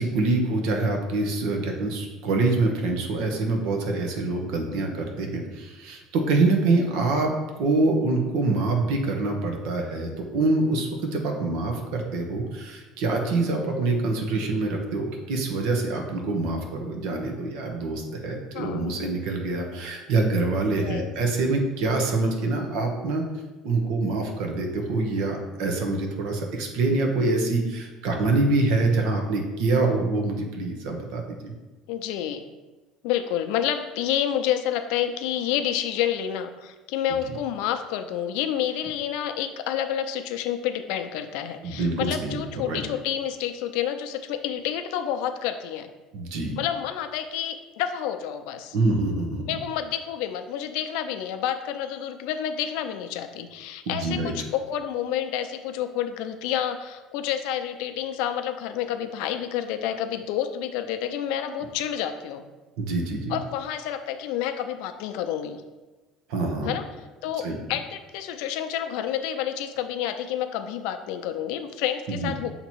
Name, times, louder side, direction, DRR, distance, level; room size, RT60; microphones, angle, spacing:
voice 1, 0.0-23.2 23.6-31.5 41.6-42.4 42.7-42.8 46.1-46.5 48.7-49.6 53.9-54.3 62.8-63.4 66.3-66.8 67.4-67.6 72.1-72.3, right 3 dB, 70° right, 3 dB, 1.0 m, -25 dB
voice 2, 18.5-19.0 20.7-21.1 31.9-32.4 33.0-45.9 46.6-48.8 49.5-62.4 63.3-65.6 66.6-66.8 67.2-72.5, left 10 dB, 80° left, 8 dB, 0.5 m, -29 dB
7.2 x 2.9 x 4.5 m, 1.2 s
cardioid pair, 165°, 0 cm